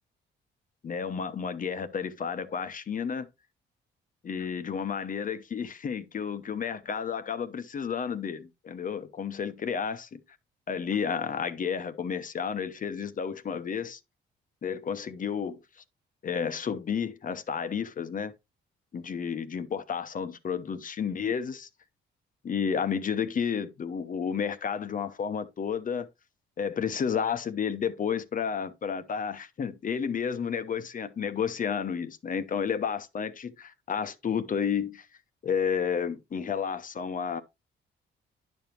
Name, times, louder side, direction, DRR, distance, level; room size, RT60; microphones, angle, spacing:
voice 1, 0.8-3.3 4.2-10.2 10.7-14.0 14.6-15.6 16.2-18.3 18.9-21.7 22.4-26.1 26.6-35.1 35.4-37.4, left 7 dB, 45° left, 0.9 m, -31 dB
10.0 x 5.3 x 3.0 m
cardioid pair, 90°, 20 cm